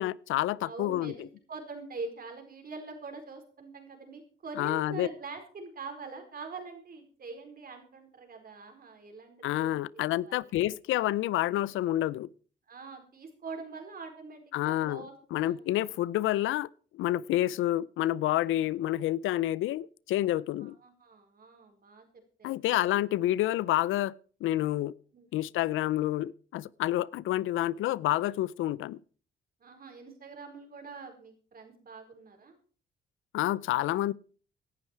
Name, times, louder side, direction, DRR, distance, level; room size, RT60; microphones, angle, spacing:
voice 1, 0.0-1.1 4.6-5.1 9.4-12.3 14.5-15.0 15.3-16.7 16.9-20.8 22.4-24.1 24.4-24.9 25.3-29.0 33.3-34.1, left 14 dB, 85° left, 0.5 m, -28 dB
voice 2, 0.6-10.5 12.7-16.0 17.4-17.6 20.6-22.0 22.4-22.5 25.1-25.4 29.6-32.5, right 4 dB, 50° right, 4.7 m, -44 dB
17.5 x 11.5 x 4.6 m
cardioid pair, 90°, 20 cm